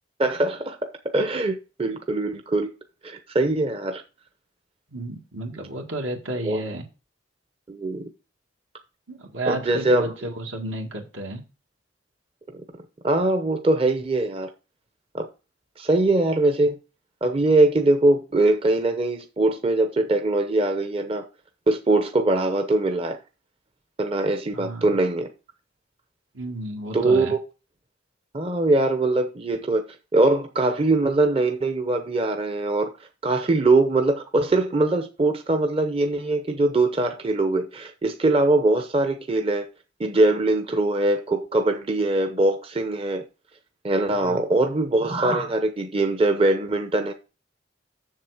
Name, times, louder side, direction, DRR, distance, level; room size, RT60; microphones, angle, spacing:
voice 1, 0.2-2.7 3.0-4.0 6.5-6.6 7.7-8.1 9.5-10.1 13.0-14.5 15.1-15.3 15.8-16.8 17.2-21.2 21.7-23.2 24.0-25.3 26.9-27.4 28.3-29.8 30.1-39.7 40.0-43.2 43.8-47.1, right 2 dB, 30° right, 0.7 m, -22 dB
voice 2, 4.9-6.9 9.1-11.4 24.5-24.9 26.3-27.3 44.1-44.4, right 1 dB, 80° right, 2.0 m, -32 dB
7.4 x 6.9 x 4.9 m
head